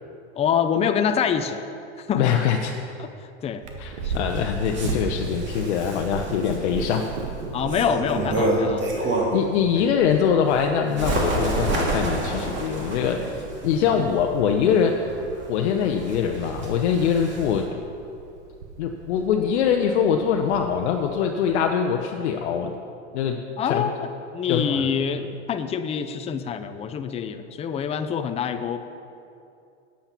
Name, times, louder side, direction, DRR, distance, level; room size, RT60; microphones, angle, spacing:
voice 1, 0.4-1.6 2.0-2.4 3.0-3.6 4.0-4.3 7.5-9.1 9.8-9.9 13.9-14.1 23.6-24.0 24.3-28.8, left 7 dB, 20° left, 8 dB, 0.5 m, -26 dB
voice 2, 2.2-2.7 3.8-7.1 9.0-14.9 15.5-17.7 18.8-22.8 23.1-23.4 23.7-23.9 24.5-24.8, left 7 dB, 65° left, 3 dB, 0.8 m, -23 dB
Purr, 3.6-21.5, right 4 dB, 75° right, 1.6 m, -37 dB
Bird, 4.1-9.5 10.0-17.6, right 2 dB, 30° right, 2.4 m, -29 dB
8.8 x 8.7 x 5.9 m, 2.6 s
hypercardioid pair, 105°, 35 cm